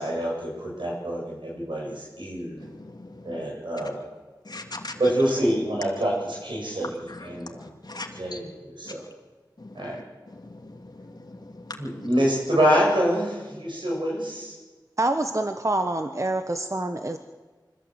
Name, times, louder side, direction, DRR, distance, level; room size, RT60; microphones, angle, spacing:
voice 1, 0.0-2.6 3.2-4.0 5.0-7.7 8.2-9.0 9.7-10.0 11.8-14.5, equal, 90° right, -3 dB, 7.9 m, -26 dB
voice 2, 2.8-3.4 4.5-5.0 7.3-7.4 7.8-8.4 9.6-9.9 10.4-12.1, left 2 dB, 60° left, 2 dB, 2.6 m, -40 dB
voice 3, 15.0-17.2, right 2 dB, 40° right, 7 dB, 1.2 m, -26 dB
25.0 x 14.5 x 8.1 m, 1.3 s
wide cardioid pair, 45°, 8 cm